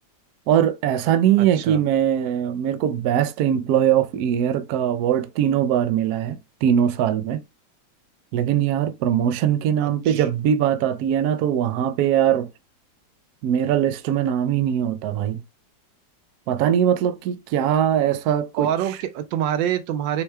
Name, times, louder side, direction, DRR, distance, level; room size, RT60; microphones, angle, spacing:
voice 1, 0.5-7.4 8.3-12.5 13.4-15.4 16.5-18.7, right 10 dB, 70° right, 0.9 m, -21 dB
voice 2, 1.4-1.8 9.8-10.2 18.6-20.2, right 10 dB, 90° right, 1.3 m, -26 dB
4.5 x 2.2 x 3.2 m
omnidirectional pair, 2.0 m